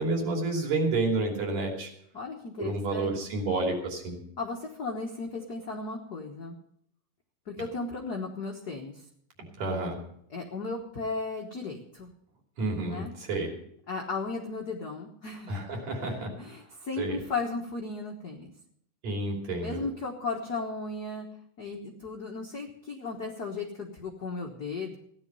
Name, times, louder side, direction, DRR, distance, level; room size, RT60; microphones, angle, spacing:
voice 1, 0.0-1.9 2.6-4.2 9.6-10.0 12.6-13.5 15.5-16.5 17.0-17.2 19.0-19.8, right 2 dB, 55° right, 1 dB, 4.0 m, -30 dB
voice 2, 2.1-3.2 4.4-6.6 7.5-9.0 10.3-12.1 12.9-13.1 13.9-15.6 16.4-18.5 19.6-21.3 21.6-25.0, left 3 dB, 70° left, 1 dB, 0.9 m, -35 dB
15.5 x 11.0 x 5.5 m, 0.68 s
omnidirectional pair, 3.9 m